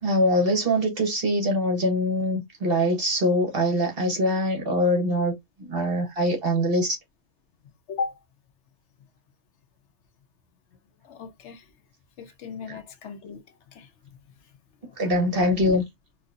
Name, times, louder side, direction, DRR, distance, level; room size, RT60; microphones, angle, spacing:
voice 1, 0.0-5.3 5.6-7.0 15.0-15.8, equal, 50° right, 1.4 m, -23 dB
voice 2, 11.0-11.6 12.2-13.4 13.7-13.9 15.0-15.1, left 5 dB, 75° left, 0.9 m, -35 dB
4.1 x 2.4 x 2.5 m
omnidirectional pair, 1.2 m